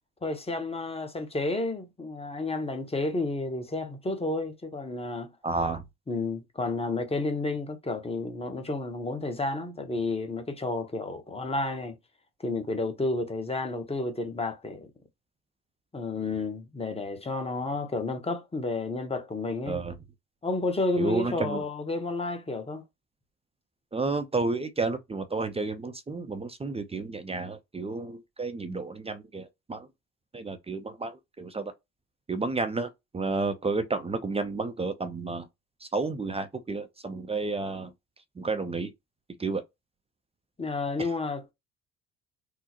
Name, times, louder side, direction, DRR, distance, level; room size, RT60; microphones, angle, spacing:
voice 1, 0.2-5.3 6.1-12.0 12.4-14.9 15.9-19.8 20.4-22.8 40.6-41.5, left 2 dB, 15° left, 1.0 m, -31 dB
voice 2, 5.4-5.8 19.7-19.9 21.0-21.6 23.9-29.9 30.3-31.7 32.3-35.5 35.8-37.9 38.4-38.9 39.4-39.6, right 3 dB, 20° right, 0.6 m, -31 dB
3.7 x 2.0 x 3.0 m
hypercardioid pair, 65°, 33 cm